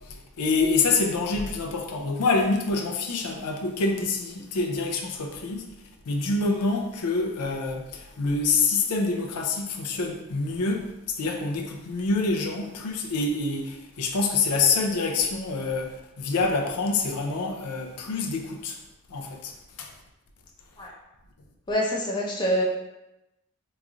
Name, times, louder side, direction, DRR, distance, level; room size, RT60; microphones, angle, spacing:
voice 1, 0.0-5.7 6.1-10.9 11.2-18.8 19.1-19.5 19.8-19.9, left 3 dB, 85° left, 2 dB, 0.5 m, -26 dB
voice 2, 21.7-22.6, equal, 20° left, -3 dB, 0.5 m, -25 dB
3.0 x 2.4 x 3.6 m, 0.96 s
head